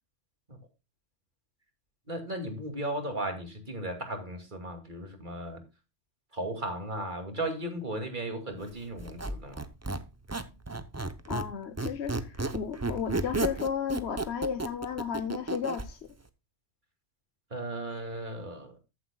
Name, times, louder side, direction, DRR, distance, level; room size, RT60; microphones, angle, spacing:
voice 1, 2.1-5.6 6.3-9.6 17.5-18.8, right 1 dB, 45° right, 2.6 m, -36 dB
Squeak, 9.0-11.5 11.8-15.9, right 2 dB, 15° right, 0.7 m, -33 dB
voice 2, 11.3-16.0, left 7 dB, 75° left, 1.1 m, -33 dB
14.5 x 7.8 x 2.3 m
omnidirectional pair, 1.1 m